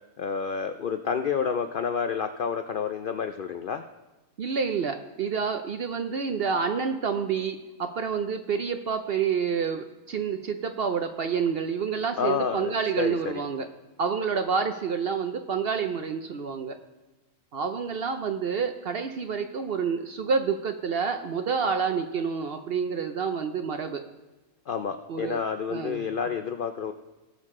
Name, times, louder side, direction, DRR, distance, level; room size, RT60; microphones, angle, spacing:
voice 1, 0.2-3.8 12.2-13.4 24.7-26.9, left 6 dB, 70° left, 7 dB, 0.5 m, -29 dB
voice 2, 4.4-13.7 14.0-16.8 17.5-24.0 25.1-25.4 25.7-26.1, right 6 dB, 60° right, 7 dB, 0.7 m, -28 dB
18.0 x 6.5 x 3.7 m, 1.1 s
omnidirectional pair, 1.5 m